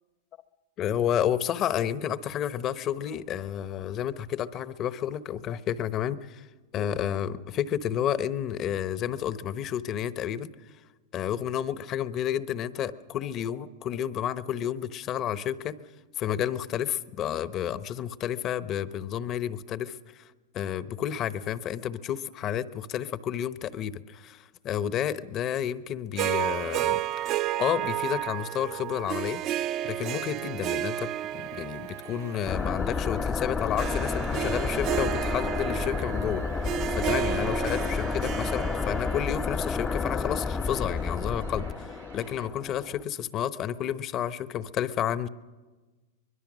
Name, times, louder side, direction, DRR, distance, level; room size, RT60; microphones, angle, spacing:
voice 1, 0.8-6.5 6.7-10.5 11.1-15.8 16.2-20.2 20.5-27.0 27.3-29.4 29.8-36.4 36.9-45.3, left 10 dB, 40° left, 14 dB, 0.9 m, -31 dB
Harp, 26.2-40.5, right 12 dB, 40° right, 0.6 m, -32 dB
sound 1, 31.3-42.5, right 8 dB, 85° right, 1.5 m, -53 dB
sound 2, 32.5-43.0, left 4 dB, 20° left, 0.6 m, -31 dB
24.0 x 21.5 x 6.3 m, 1.3 s
hypercardioid pair, 115°, 0 cm